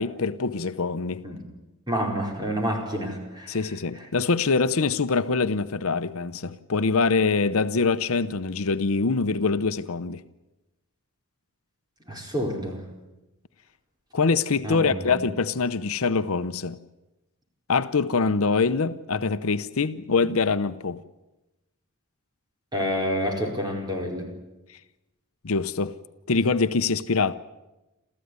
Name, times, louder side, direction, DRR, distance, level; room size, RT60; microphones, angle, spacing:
voice 1, 0.0-1.2 3.5-10.2 14.1-16.8 17.7-21.0 25.4-25.9 26.3-27.3, left 4 dB, 70° left, 0.8 m, -24 dB
voice 2, 1.9-4.1 12.1-12.8 14.6-15.1 22.7-24.3, equal, 20° right, 4.7 m, -29 dB
28.0 x 14.0 x 9.6 m
head